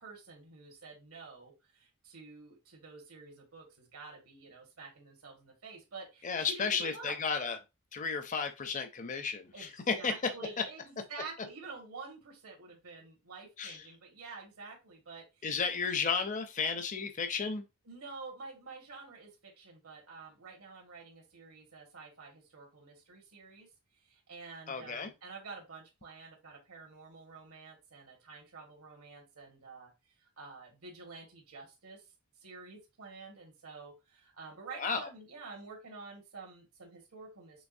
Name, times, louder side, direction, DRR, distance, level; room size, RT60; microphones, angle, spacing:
voice 1, 0.0-7.1 9.5-9.7 10.0-15.5 15.8-15.9 17.9-23.7 24.0-29.9 30.2-32.1 32.4-37.7, right 4 dB, 80° right, 1.8 m, -49 dB
voice 2, 6.2-7.6 7.9-10.1 13.6-13.8 15.4-17.6 24.7-25.1 34.7-35.1, left 5 dB, 35° left, 0.5 m, -33 dB
6.2 x 3.0 x 2.6 m
head